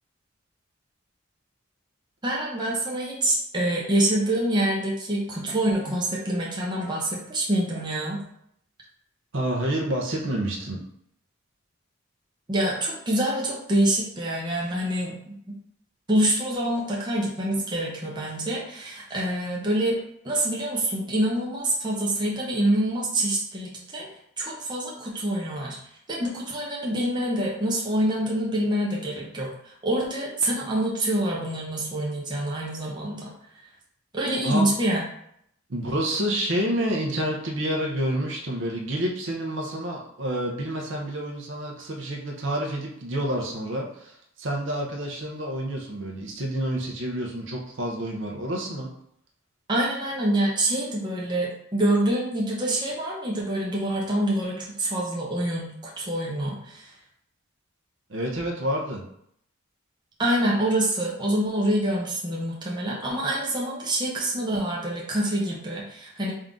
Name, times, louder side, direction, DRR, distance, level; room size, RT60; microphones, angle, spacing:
voice 1, 2.2-8.2 12.5-15.5 16.1-20.0 20.2-24.1 24.4-25.8 26.1-33.3 34.1-35.0 49.7-56.9 60.2-66.3, right 1 dB, 20° right, -4 dB, 0.7 m, -26 dB
voice 2, 9.3-10.8 34.4-34.7 35.7-48.9 58.1-59.0, right 1 dB, 60° right, -1 dB, 0.7 m, -28 dB
3.7 x 2.6 x 3.6 m, 0.71 s
head